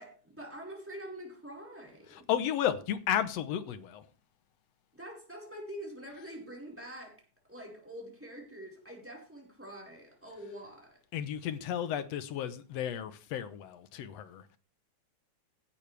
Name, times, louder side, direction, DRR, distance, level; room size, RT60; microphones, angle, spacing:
voice 1, 0.0-2.3 4.9-7.2 7.5-11.0, equal, 5° right, 4.5 m, -45 dB
voice 2, 2.1-4.1 11.1-14.6, left 10 dB, 70° left, 1.9 m, -33 dB
16.0 x 12.0 x 3.4 m
omnidirectional pair, 3.4 m